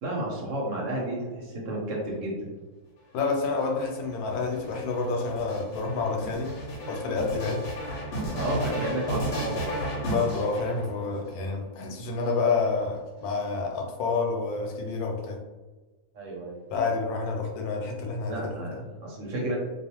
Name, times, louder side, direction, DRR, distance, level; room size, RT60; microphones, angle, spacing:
voice 1, 0.0-2.4 8.3-9.7 16.1-16.6 18.3-19.6, right 1 dB, 60° right, -3 dB, 1.0 m, -31 dB
voice 2, 3.1-6.5 6.9-7.6 10.0-15.4 16.7-18.6, left 4 dB, 85° left, 1 dB, 1.1 m, -28 dB
sound 1, 3.3-11.3 12.1-13.0, right 1 dB, 55° left, 0.8 m, -34 dB
2.4 x 2.3 x 2.8 m, 1.2 s
omnidirectional pair, 1.6 m